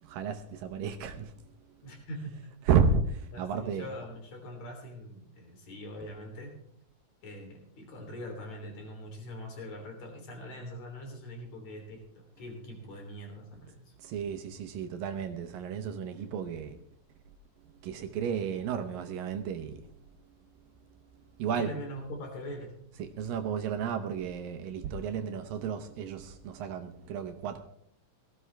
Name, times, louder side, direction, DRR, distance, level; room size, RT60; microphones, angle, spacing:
voice 1, 0.0-1.4 2.6-3.9 14.0-16.8 17.8-20.0 21.4-21.7 23.0-27.6, right 6 dB, 75° right, 2.4 m, -32 dB
voice 2, 1.8-2.4 3.3-6.6 7.2-13.9 21.4-22.7, equal, 50° left, 4.5 m, -42 dB
17.5 x 15.0 x 3.4 m
omnidirectional pair, 4.3 m